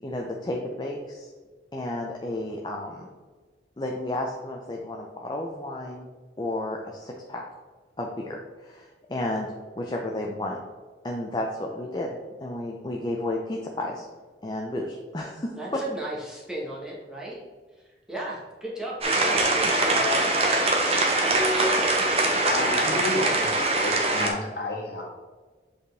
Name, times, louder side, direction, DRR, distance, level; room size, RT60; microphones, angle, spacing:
voice 1, 0.0-1.3 1.7-3.1 3.8-6.1 6.4-7.4 8.0-9.5 9.7-10.6 11.0-14.0 14.4-15.5, left 1 dB, 25° left, 0 dB, 0.5 m, -32 dB
voice 2, 15.5-17.4 18.1-22.0, right 1 dB, 5° right, -5 dB, 1.2 m, -36 dB
sound 1, 19.0-24.3, right 2 dB, 35° right, 0.8 m, -23 dB
voice 3, 22.4-25.0, left 1 dB, 60° left, -2 dB, 1.6 m, -31 dB
7.7 x 4.3 x 3.4 m, 1.4 s
head